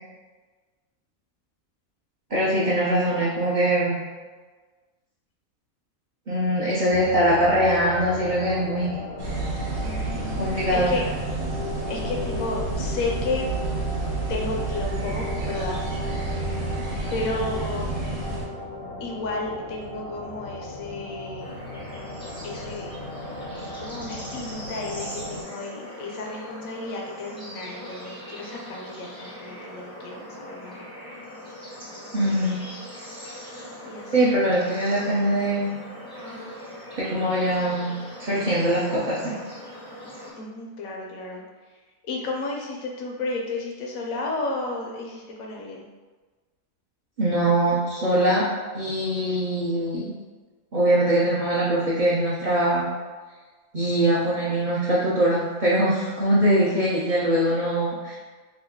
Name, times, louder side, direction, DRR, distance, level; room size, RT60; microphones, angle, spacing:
voice 1, 2.3-4.0 6.3-8.9 10.4-10.9 32.1-32.6 34.1-35.8 37.0-39.4 47.2-48.5 48.7-50.1 50.7-52.9 53.7-58.2, right 1 dB, 55° right, -8 dB, 0.5 m, -22 dB
sound 1, 6.9-25.4, left 2 dB, 60° left, 0.6 m, -36 dB
sound 2, 9.2-18.4, right 3 dB, 70° right, 1.1 m, -30 dB
voice 2, 9.8-10.4 10.7-11.0 11.9-13.5 14.3-15.8 17.1-17.9 19.0-21.6 22.4-22.9 23.8-30.8 33.8-34.4 40.4-41.4 41.7-45.9, left 2 dB, 85° left, -1 dB, 1.0 m, -32 dB
Bird / Insect / Frog, 21.4-40.3, equal, 5° left, 0.5 m, -41 dB
3.0 x 2.2 x 3.5 m, 1.3 s
omnidirectional pair, 1.4 m